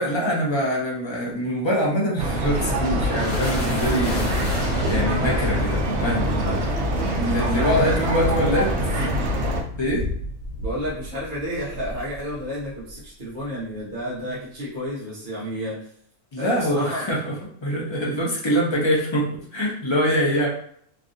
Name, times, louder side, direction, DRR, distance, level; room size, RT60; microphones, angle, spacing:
voice 1, 0.0-6.6 7.1-8.7 9.8-10.0 16.3-17.4 17.6-20.5, equal, 35° left, -3 dB, 0.4 m, -24 dB
sound 1, 2.2-9.6, equal, 65° right, 0.8 m, -24 dB
sound 2, 2.7-13.0, left 1 dB, 75° left, 1.2 m, -32 dB
voice 2, 7.1-8.5 10.6-15.9 16.4-17.0, equal, 40° right, -8 dB, 1.0 m, -31 dB
3.1 x 2.5 x 2.5 m, 0.64 s
omnidirectional pair, 1.4 m